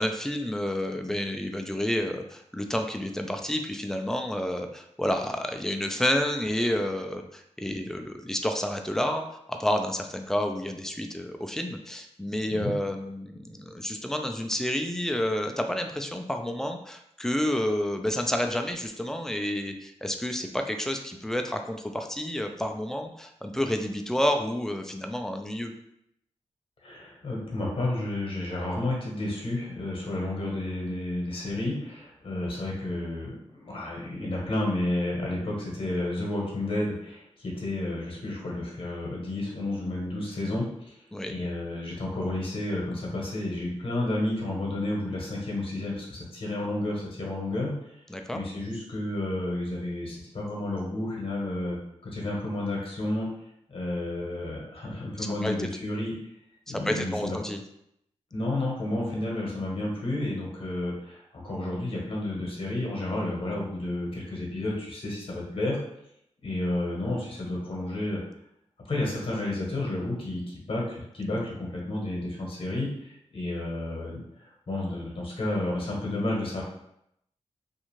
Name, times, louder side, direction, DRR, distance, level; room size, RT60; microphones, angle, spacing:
voice 1, 0.0-9.2 9.5-25.7 41.1-41.4 48.1-48.4 55.2-55.7 56.7-57.6, left 1 dB, 5° left, 4 dB, 0.3 m, -30 dB
voice 2, 26.8-41.0 41.3-47.7 48.3-51.8 52.0-53.3 53.7-56.1 56.7-57.4 58.3-65.8 66.4-68.2 68.8-76.6, left 1 dB, 50° left, -2 dB, 0.9 m, -31 dB
2.5 x 2.3 x 3.0 m, 0.76 s
cardioid pair, 65°, 12 cm